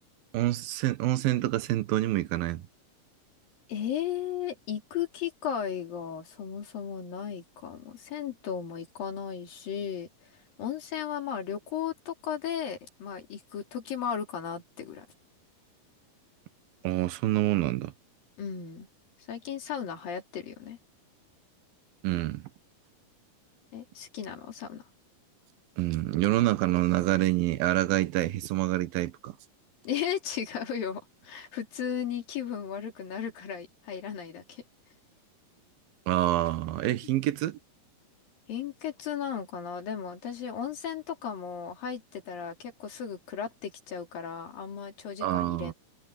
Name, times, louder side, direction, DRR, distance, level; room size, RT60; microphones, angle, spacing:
voice 1, 0.3-2.7 16.8-17.9 22.0-22.4 25.8-29.3 36.1-37.6 45.2-45.7, right 15 dB, 85° right, 2.9 m, -27 dB
voice 2, 3.7-10.3 10.6-15.1 18.4-18.9 19.3-20.8 23.7-24.8 29.8-34.6 38.5-45.7, left 8 dB, 75° left, 5.0 m, -35 dB
omnidirectional pair, 4.1 m